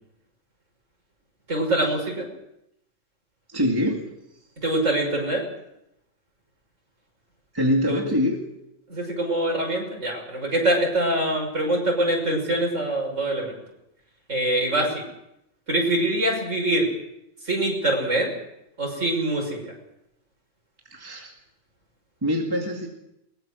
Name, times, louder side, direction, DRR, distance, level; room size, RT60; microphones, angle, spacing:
voice 1, 1.5-2.3 4.6-5.4 7.9-8.0 8.9-13.6 14.3-15.0 15.7-16.9 17.4-18.3 18.8-19.7, right 1 dB, 70° right, -1 dB, 6.2 m, -24 dB
voice 2, 3.5-4.0 7.5-8.4 20.9-21.3 22.2-22.9, equal, 15° right, 0 dB, 2.3 m, -24 dB
22.5 x 20.0 x 6.4 m, 0.83 s
omnidirectional pair, 1.3 m